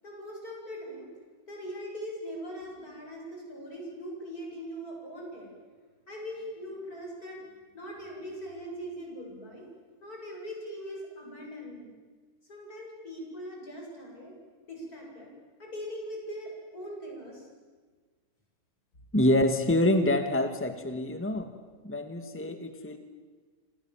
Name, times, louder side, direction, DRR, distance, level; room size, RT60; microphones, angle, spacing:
voice 1, 0.0-1.1 1.5-5.5 6.1-7.5 7.7-9.6 10.0-11.9 12.5-14.3 14.7-15.3 15.6-17.5, equal, 75° left, -1 dB, 8.8 m, -41 dB
voice 2, 19.1-21.5 21.8-23.0, left 1 dB, 10° left, 7 dB, 1.8 m, -26 dB
27.5 x 27.5 x 7.6 m, 1.4 s
omnidirectional pair, 1.6 m